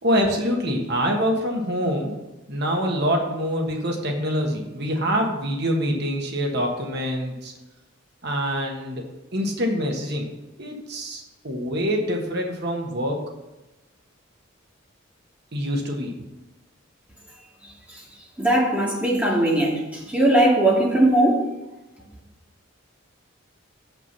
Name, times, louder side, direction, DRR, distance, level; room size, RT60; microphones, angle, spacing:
voice 1, 0.0-2.1 2.5-7.5 8.2-9.0 9.3-10.3 10.6-13.3 15.5-16.1, equal, 55° right, 1 dB, 1.5 m, -25 dB
voice 2, 18.4-21.4, right 1 dB, 5° right, -3 dB, 2.1 m, -19 dB
7.7 x 6.0 x 6.9 m, 1.0 s
head